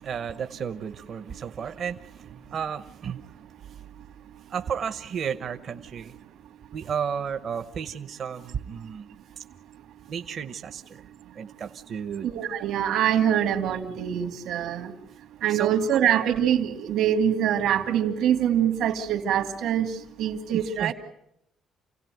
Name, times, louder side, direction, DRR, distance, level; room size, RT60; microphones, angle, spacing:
voice 1, 0.0-3.8 4.5-6.1 6.7-9.1 9.4-9.5 10.1-11.0 11.4-12.3 15.5-16.0 20.8-20.9, right 7 dB, 40° right, 9 dB, 0.9 m, -33 dB
voice 2, 12.2-14.9 15.4-19.9 20.2-20.9, right 9 dB, 70° right, 6 dB, 2.7 m, -24 dB
29.0 x 17.5 x 9.3 m, 0.79 s
cardioid pair, 180°, 0 cm